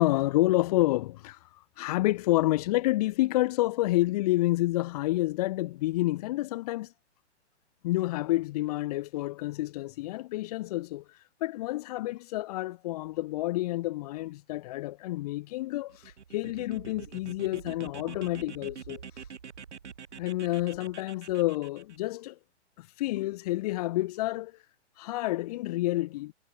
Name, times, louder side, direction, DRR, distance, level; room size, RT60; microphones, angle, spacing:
voice 1, 0.0-1.4 1.8-6.9 7.8-11.0 11.4-16.0 16.3-19.0 20.2-22.4 22.8-24.5 25.0-26.3, left 17 dB, 35° left, 0.7 m, -29 dB
sound 1, 15.9-22.0, right 6 dB, 75° right, 5.1 m, -46 dB
hypercardioid pair, 130°, 35 cm